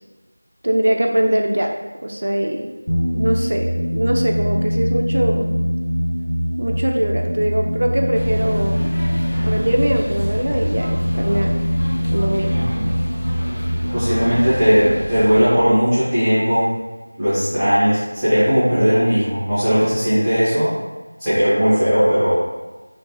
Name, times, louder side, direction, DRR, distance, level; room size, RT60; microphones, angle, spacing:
voice 1, 0.6-2.7 3.1-5.5 6.6-8.9 9.4-11.6 12.1-12.6 14.8-15.0, right 1 dB, 45° right, 2 dB, 0.4 m, -22 dB
sound 1, 2.9-16.1, equal, 55° left, 1.2 m, -23 dB
sound 2, 8.1-15.5, equal, 35° left, 0.5 m, -31 dB
voice 2, 12.5-12.9 13.9-16.7 17.2-20.7 21.2-22.3, equal, ahead, -18 dB, 0.7 m, -17 dB
3.1 x 3.1 x 3.1 m, 1.2 s
figure-of-eight pair, 175°, 0 cm